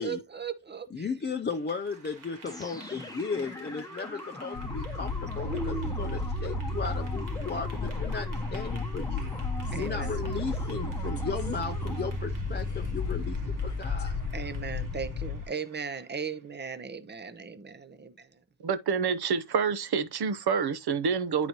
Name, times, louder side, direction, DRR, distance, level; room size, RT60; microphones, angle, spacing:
voice 1, 0.0-1.1 5.4-6.1 9.7-10.2 14.3-18.4, right 5 dB, 25° right, 0.7 m, -37 dB
voice 2, 0.9-9.3 9.7-14.2, left 5 dB, 25° left, 0.4 m, -35 dB
Clapping / Applause, 1.3-16.5, right 3 dB, 50° right, 1.7 m, -53 dB
sound 1, 2.4-12.3, left 2 dB, 10° left, 1.0 m, -42 dB
sound 2, 4.5-15.4, left 2 dB, 45° left, 0.9 m, -33 dB
voice 3, 18.6-21.5, right 6 dB, 65° right, 0.8 m, -27 dB
10.5 x 4.0 x 2.9 m
wide cardioid pair, 140°, 41 cm